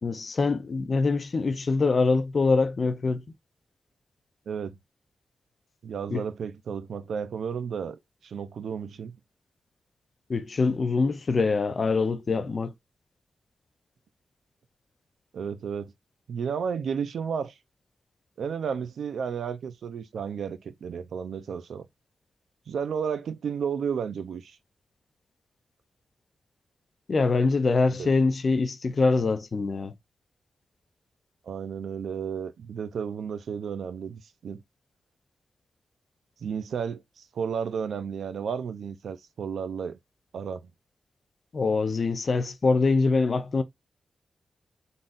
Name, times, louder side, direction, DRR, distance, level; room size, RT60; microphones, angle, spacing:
voice 1, 0.0-3.2 6.1-6.2 10.3-12.7 27.1-29.9 41.5-43.6, left 4 dB, 40° left, 0.5 m, -24 dB
voice 2, 4.5-4.8 5.8-9.2 15.3-15.9 16.3-17.5 18.4-21.8 22.7-24.6 28.0-28.1 31.5-34.6 36.4-40.0 40.3-40.6, right 7 dB, 85° right, 0.5 m, -32 dB
3.9 x 3.7 x 2.5 m
wide cardioid pair, 150°, 0 cm